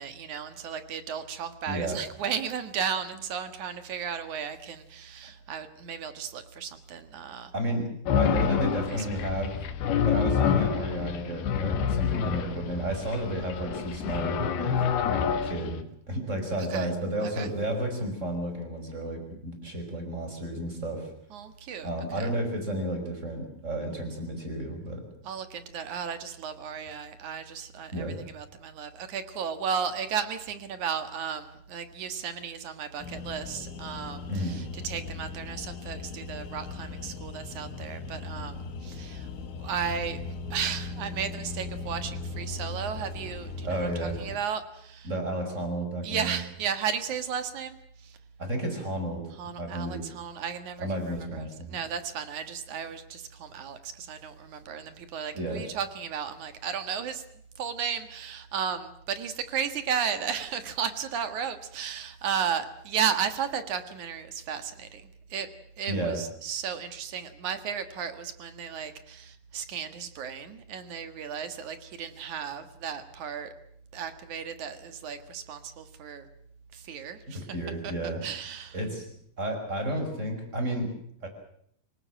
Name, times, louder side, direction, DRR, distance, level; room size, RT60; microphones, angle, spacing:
voice 1, 0.0-7.5 8.9-9.1 16.7-16.9 17.2-17.5 21.3-22.3 25.2-39.3 39.6-40.2 40.5-45.1 46.0-48.2 49.4-57.2 57.6-65.5 65.8-73.5 73.9-76.3 76.7-77.6 77.8-77.9 78.2-78.8, right 7 dB, 55° right, 10 dB, 2.4 m, -34 dB
voice 2, 1.7-2.0 7.5-9.6 10.0-14.9 15.4-21.1 21.8-25.0 27.9-28.2 34.3-34.6 43.6-44.2 45.0-46.4 48.4-49.3 49.6-50.0 50.8-51.8 55.3-55.6 65.9-66.2 77.3-78.2 78.7-79.1 79.4-81.3, right 1 dB, 15° right, 5 dB, 5.6 m, -32 dB
sound 1, 8.1-15.8, left 7 dB, 65° left, 3.3 m, -27 dB
sound 2, 33.0-44.4, left 3 dB, 90° left, 4.0 m, -38 dB
25.5 x 19.0 x 7.5 m, 0.70 s
omnidirectional pair, 5.2 m